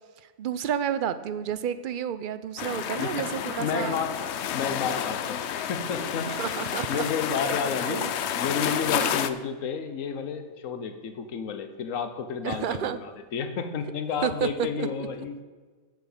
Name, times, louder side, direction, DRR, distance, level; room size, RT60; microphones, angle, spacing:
voice 1, 0.4-4.0 6.3-7.0 7.4-7.5 7.9-8.1 8.9-9.2 12.4-13.0 14.2-15.1, right 9 dB, 55° right, 13 dB, 0.6 m, -30 dB
sound 1, 2.6-9.3, left 9 dB, 65° left, 0.8 m, -30 dB
voice 2, 3.0-6.4 6.9-8.0 8.3-15.4, left 6 dB, 85° left, 8 dB, 1.3 m, -31 dB
8.1 x 8.1 x 6.9 m, 1.4 s
omnidirectional pair, 1.3 m